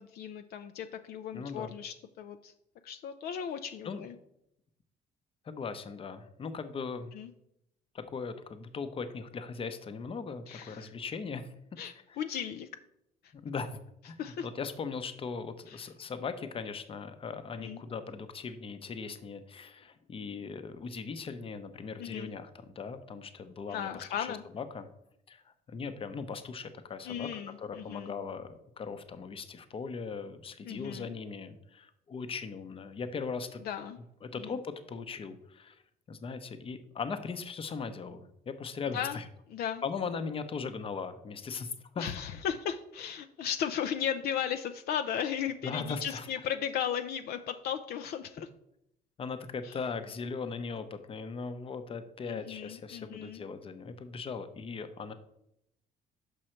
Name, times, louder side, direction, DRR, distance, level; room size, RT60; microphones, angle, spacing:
voice 1, 0.0-2.5 2.8-4.2 7.1-7.3 10.5-10.9 11.8-12.7 13.2-13.3 14.2-14.5 15.7-15.9 17.6-17.8 22.0-22.3 23.7-24.4 27.0-28.1 30.6-31.1 33.6-34.0 34.3-34.6 38.9-39.2 39.5-39.8 42.0-48.5 49.6-49.8 52.3-53.4, left 8 dB, 65° left, 8 dB, 0.4 m, -36 dB
voice 2, 1.3-1.7 3.8-4.1 5.4-7.1 7.9-11.5 12.1-12.2 13.3-13.8 14.0-24.9 25.3-33.6 34.2-35.8 36.1-39.3 39.8-42.1 45.6-46.3 49.2-55.1, left 5 dB, 35° left, 10 dB, 0.7 m, -39 dB
6.3 x 5.4 x 4.4 m, 0.80 s
cardioid pair, 110°, 17 cm